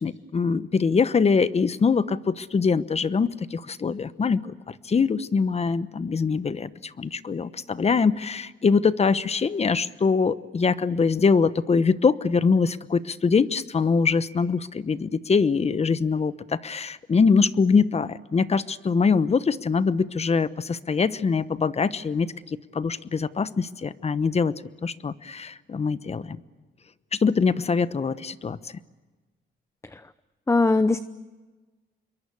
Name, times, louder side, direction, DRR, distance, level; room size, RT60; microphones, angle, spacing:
voice 1, 0.0-24.5 24.8-26.4 27.1-28.7, left 5 dB, 30° left, 15 dB, 1.0 m, -23 dB
voice 2, 30.5-31.0, left 3 dB, 15° left, 13 dB, 0.7 m, -20 dB
27.0 x 23.0 x 8.4 m, 1.3 s
cardioid pair, 90°, 20 cm